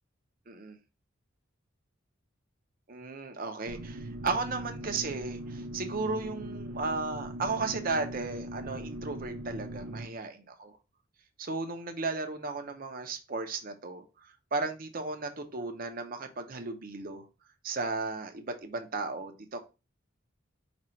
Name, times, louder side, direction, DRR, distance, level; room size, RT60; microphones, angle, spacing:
voice 1, 0.5-0.8 2.9-10.7 11.4-17.2 17.6-19.6, right 3 dB, 45° right, 6 dB, 0.7 m, -35 dB
sound 1, 3.7-10.1, right 1 dB, 80° right, 0.5 m, -40 dB
5.1 x 2.4 x 4.3 m, 0.29 s
head